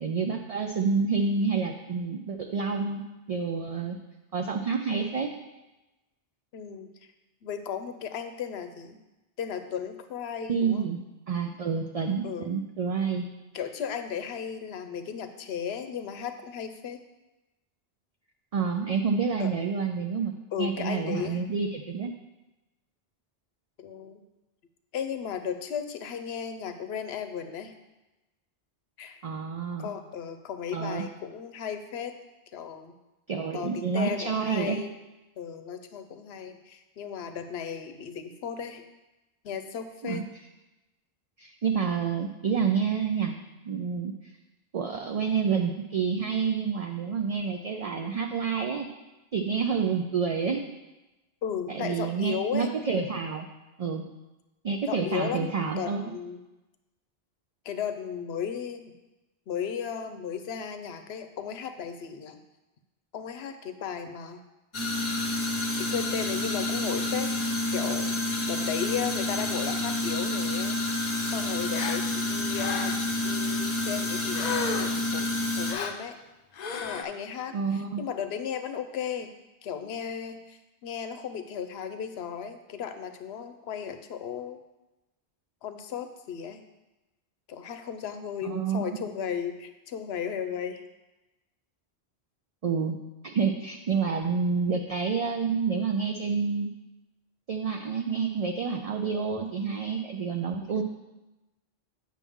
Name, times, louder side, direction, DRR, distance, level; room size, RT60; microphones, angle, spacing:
voice 1, 0.0-3.0 3.3-4.0 4.3-5.3 10.5-11.0 11.3-13.3 18.5-22.1 29.2-29.9 30.7-31.0 33.3-34.8 40.0-40.2 41.4-43.3 43.7-44.1 44.7-48.9 49.3-50.6 51.7-53.5 53.8-54.0 54.6-56.0 77.5-78.0 88.4-88.9 92.6-93.0 93.2-96.7 97.5-100.8, right 5 dB, 55° right, 3 dB, 0.4 m, -28 dB
voice 2, 6.5-6.9 7.4-9.0 9.4-10.9 12.2-12.5 13.5-17.0 19.4-19.5 20.5-21.4 23.8-24.2 24.9-27.7 29.0-29.2 29.8-32.1 32.5-32.9 33.5-34.9 35.4-38.8 39.4-40.2 51.4-52.7 54.9-56.4 57.6-58.9 59.5-62.4 63.1-64.4 65.7-68.1 68.5-70.8 71.2-76.2 76.8-79.3 79.6-84.6 85.6-86.6 87.5-90.8 100.6-100.8, left 8 dB, 80° left, 8 dB, 0.9 m, -35 dB
sound 1, 64.7-75.7, left 2 dB, 30° left, 0.9 m, -29 dB
Gasp, 71.7-72.0 72.5-73.1 74.3-75.0 75.7-76.0 76.5-77.0, left 5 dB, 50° left, 0.5 m, -33 dB
8.3 x 5.9 x 3.6 m, 1.0 s
omnidirectional pair, 1.1 m